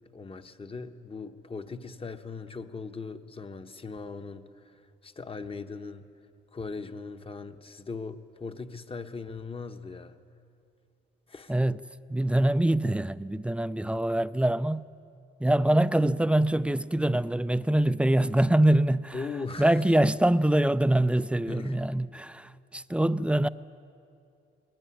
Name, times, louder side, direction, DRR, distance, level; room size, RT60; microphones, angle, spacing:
voice 1, 0.1-6.1 6.5-10.2 11.3-11.5 19.1-19.7 21.5-21.8, left 4 dB, 30° left, 1.2 m, -39 dB
voice 2, 11.5-11.8 12.1-14.9 15.4-19.3 19.6-23.5, right 1 dB, 5° right, 0.5 m, -24 dB
20.5 x 17.0 x 9.9 m
cardioid pair, 90°, 20 cm